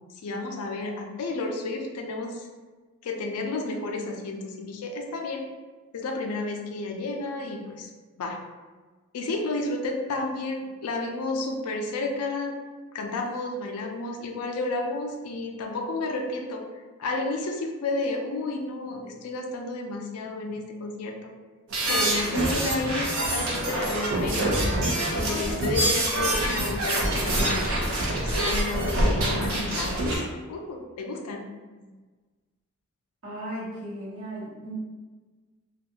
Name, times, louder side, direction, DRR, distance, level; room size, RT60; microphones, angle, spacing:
voice 1, 0.2-2.5 3.0-5.5 5.9-7.9 8.2-8.4 9.1-12.6 12.9-16.7 17.0-21.3 21.8-24.6 25.0-27.9 28.2-31.5 31.8-31.9, left 2 dB, 85° left, 3 dB, 0.4 m, -31 dB
sound 1, 21.7-30.2, right 1 dB, 70° right, 0.6 m, -25 dB
voice 2, 33.2-34.7, right 1 dB, 90° right, -11 dB, 1.1 m, -36 dB
2.4 x 2.2 x 2.7 m, 1.4 s
head